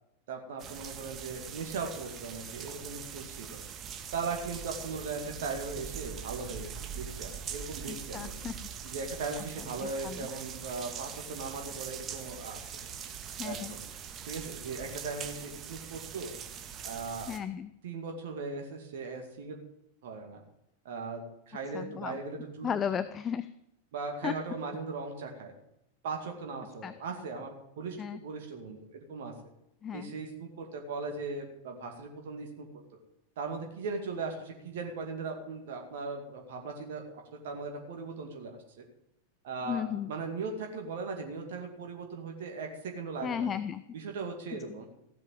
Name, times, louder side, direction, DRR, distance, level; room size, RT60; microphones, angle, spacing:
voice 1, 0.3-3.6 4.1-8.3 8.8-12.8 13.4-13.8 14.3-16.3 16.8-17.3 17.8-19.6 20.0-20.4 20.8-23.1 23.9-25.5 26.0-29.3 29.9-32.7 33.4-38.8 39.4-43.5 43.9-44.9, right 4 dB, 55° right, 2 dB, 2.3 m, -38 dB
sound 1, 0.6-17.4, right 8 dB, 30° right, 1.6 m, -42 dB
voice 2, 7.9-8.5 9.8-10.3 13.4-13.7 17.3-17.7 21.7-22.2 22.6-23.5 24.2-24.3 26.8-26.9 28.0-28.2 29.8-30.1 39.7-40.1 43.2-43.8 44.5-44.8, left 8 dB, 25° left, 14 dB, 0.6 m, -35 dB
16.0 x 7.6 x 7.5 m, 0.81 s
figure-of-eight pair, 90°, 0 cm